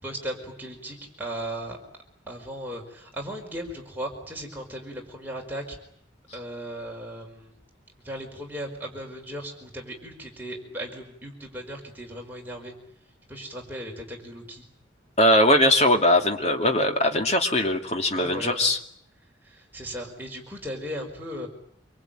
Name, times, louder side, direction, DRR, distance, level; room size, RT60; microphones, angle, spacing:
voice 1, 0.0-1.8 2.3-5.8 6.3-7.5 8.0-12.7 13.3-14.6 18.1-18.7 19.4-21.5, equal, 10° right, 0 dB, 5.1 m, -37 dB
voice 2, 15.2-18.8, left 1 dB, 35° left, 4 dB, 2.5 m, -20 dB
26.5 x 24.5 x 9.1 m, 0.68 s
head